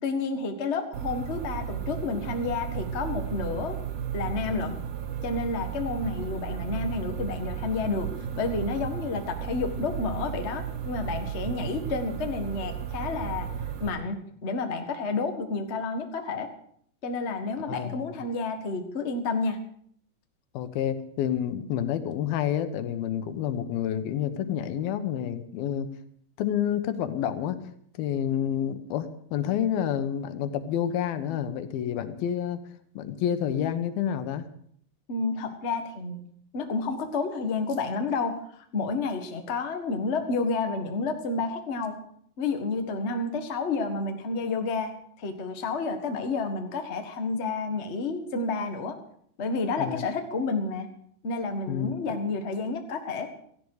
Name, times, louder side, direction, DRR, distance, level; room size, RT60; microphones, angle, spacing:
voice 1, 0.0-3.8 4.1-4.8 5.2-8.1 8.3-13.5 13.8-16.5 17.0-19.6 35.1-36.3 36.5-42.0 42.4-44.9 45.2-49.0 49.4-50.9 51.2-53.3, left 3 dB, 55° left, 5 dB, 0.7 m, -30 dB
sound 1, 0.9-13.9, right 8 dB, 70° right, 2.7 m, -34 dB
voice 2, 17.6-18.1 20.5-25.9 26.4-27.6 28.0-32.6 33.0-34.5 49.8-50.0 51.7-51.9, left 9 dB, 90° left, 10 dB, 3.0 m, -29 dB
17.0 x 15.0 x 4.9 m, 0.64 s
omnidirectional pair, 4.2 m